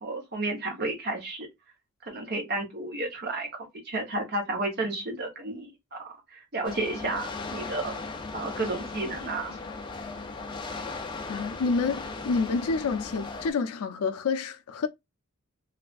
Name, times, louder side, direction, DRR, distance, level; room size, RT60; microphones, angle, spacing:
voice 1, 0.0-1.5 2.1-3.5 3.8-6.0 6.3-7.9 8.3-9.6, right 2 dB, 45° right, 1.0 m, -32 dB
sound 1, 6.6-13.5, left 3 dB, 20° left, 0.4 m, -37 dB
voice 2, 11.3-14.9, left 4 dB, 85° left, 0.4 m, -28 dB
3.2 x 2.3 x 2.4 m
head